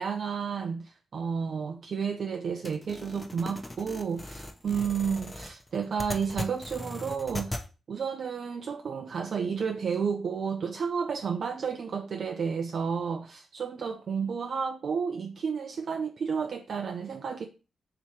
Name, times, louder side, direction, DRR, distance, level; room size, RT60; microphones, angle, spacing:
voice 1, 0.0-7.6 7.9-17.5, right 6 dB, 60° right, 0.3 m, -31 dB
sound 1, 2.6-7.7, left 1 dB, 20° left, 0.7 m, -39 dB
3.0 x 2.9 x 4.5 m
supercardioid pair, 45°, 0 cm